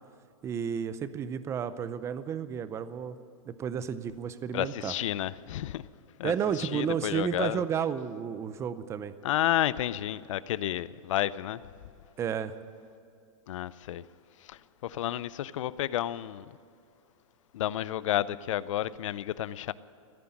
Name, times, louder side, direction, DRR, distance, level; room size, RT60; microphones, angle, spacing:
voice 1, 0.4-3.2 3.5-4.9 6.2-9.1 12.2-12.5, right 8 dB, 15° right, 0.6 m, -32 dB
voice 2, 4.5-5.8 6.2-7.6 9.2-11.6 13.5-14.0 14.5-16.4 17.5-19.7, left 12 dB, 65° left, 0.6 m, -31 dB
15.0 x 9.7 x 9.8 m
hypercardioid pair, 150°, 17 cm